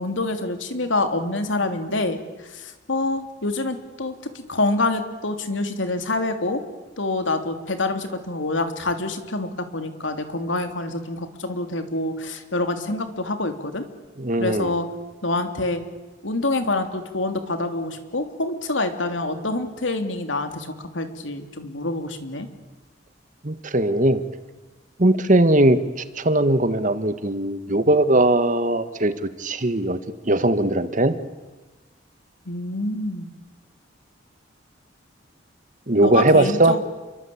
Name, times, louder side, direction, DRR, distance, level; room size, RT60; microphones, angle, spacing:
voice 1, 0.0-6.6 7.0-13.8 14.4-14.9 15.2-15.8 16.2-22.5 32.4-33.3 36.0-36.8, left 2 dB, 85° left, 7 dB, 3.2 m, -26 dB
voice 2, 14.2-14.7 23.4-24.2 25.0-25.8 26.2-29.1 29.4-30.0 30.3-31.2 35.9-36.8, right 1 dB, 45° right, 11 dB, 1.7 m, -19 dB
29.0 x 23.0 x 8.7 m, 1.2 s
head